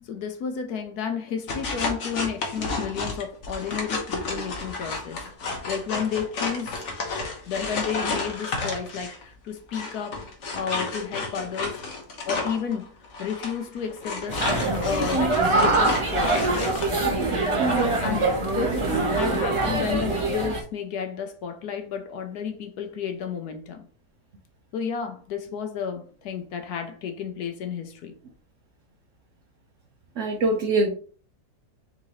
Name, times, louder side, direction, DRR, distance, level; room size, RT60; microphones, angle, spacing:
voice 1, 0.0-6.8 7.5-10.2 10.5-11.8 12.2-12.9 13.2-16.5 18.0-23.8 24.7-28.1, left 7 dB, 70° left, 1.2 m, -32 dB
sound 1, 1.5-9.2 9.7-16.9, left 3 dB, 50° left, 1.1 m, -31 dB
sound 2, 14.3-20.6, right 2 dB, 25° right, 0.7 m, -24 dB
voice 2, 17.6-17.9 30.2-30.9, right 3 dB, 60° right, 0.9 m, -24 dB
3.8 x 3.8 x 3.0 m
omnidirectional pair, 1.8 m